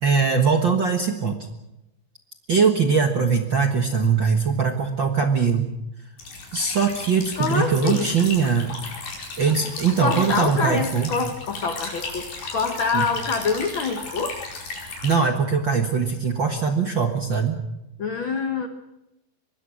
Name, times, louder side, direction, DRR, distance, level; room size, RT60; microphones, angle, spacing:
voice 1, 0.0-1.4 2.5-5.7 6.5-8.7 9.4-11.1 12.9-13.0 15.0-17.6, right 5 dB, 50° right, 5 dB, 1.4 m, -21 dB
sound 1, 6.2-15.2, left 3 dB, 90° left, 6.9 m, -35 dB
voice 2, 7.4-8.2 10.0-14.4 18.0-18.7, left 4 dB, 70° left, 7 dB, 1.2 m, -25 dB
24.5 x 21.5 x 6.4 m, 0.91 s
omnidirectional pair, 4.2 m